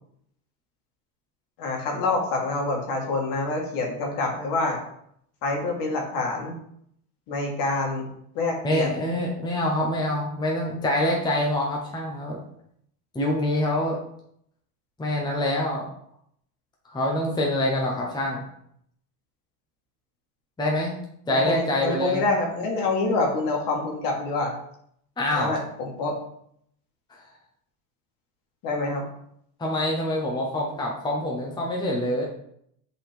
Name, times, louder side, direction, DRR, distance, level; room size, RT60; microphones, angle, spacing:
voice 1, 1.6-4.8 5.4-6.6 7.3-8.1 8.4-8.9 21.3-24.5 25.3-26.2 28.6-29.1, left 3 dB, 50° left, 0 dB, 1.8 m, -26 dB
voice 2, 8.6-12.4 13.1-14.0 15.0-15.8 16.9-18.4 20.6-21.0 21.3-22.2 25.2-25.6 29.6-32.2, left 1 dB, 10° left, -2 dB, 0.9 m, -25 dB
7.5 x 4.1 x 3.5 m, 0.71 s
supercardioid pair, 130°, 42 cm